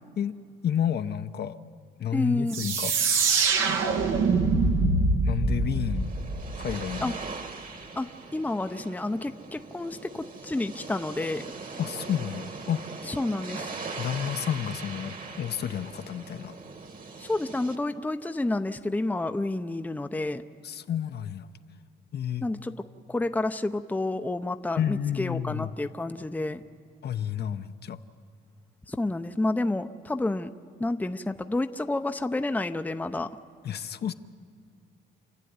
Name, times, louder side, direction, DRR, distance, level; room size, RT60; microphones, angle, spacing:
voice 1, 0.6-1.6 2.0-2.9 5.2-6.1 6.6-7.1 11.8-12.8 14.0-16.5 20.6-21.5 22.1-22.4 24.8-25.7 27.0-28.0 33.6-34.1, left 9 dB, 55° left, 8 dB, 0.9 m, -30 dB
voice 2, 2.1-2.7 7.0-7.2 8.0-11.4 13.0-13.7 17.2-20.4 22.4-22.7 23.1-26.6 28.9-30.5 30.8-33.3, left 2 dB, 10° left, 8 dB, 0.7 m, -30 dB
sound 1, 2.5-7.1, right 4 dB, 85° right, 1.8 m, -24 dB
sound 2, 5.5-17.8, right 4 dB, 45° right, 2.0 m, -41 dB
28.5 x 11.5 x 9.6 m, 2.2 s
cardioid pair, 90°, 20 cm